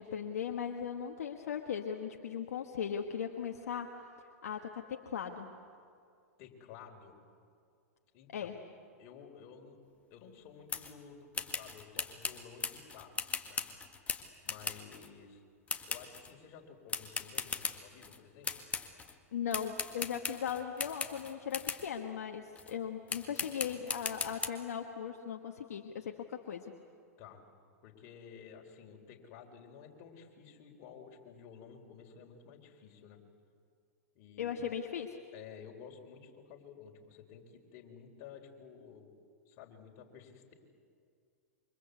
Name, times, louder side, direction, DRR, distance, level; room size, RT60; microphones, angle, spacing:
voice 1, 0.0-3.9 4.4-5.5 8.3-8.5 19.3-26.7 34.4-35.2, left 8 dB, 75° left, 3 dB, 1.5 m, -38 dB
voice 2, 6.4-7.1 8.1-8.6 9.0-9.8 10.1-13.6 14.4-15.4 15.8-18.6 23.3-23.4 27.2-27.4 27.8-33.2 34.1-34.7 35.3-39.1 39.5-40.5, left 7 dB, 45° left, 1 dB, 4.4 m, -53 dB
sound 1, 10.7-10.9 11.3-15.1 15.7-16.3 16.9-18.2 18.4-19.1 19.5-21.9 22.6-22.7 23.1-24.5, left 5 dB, 15° left, 1.8 m, -38 dB
28.0 x 25.0 x 8.3 m, 2.3 s
hypercardioid pair, 110°, 8 cm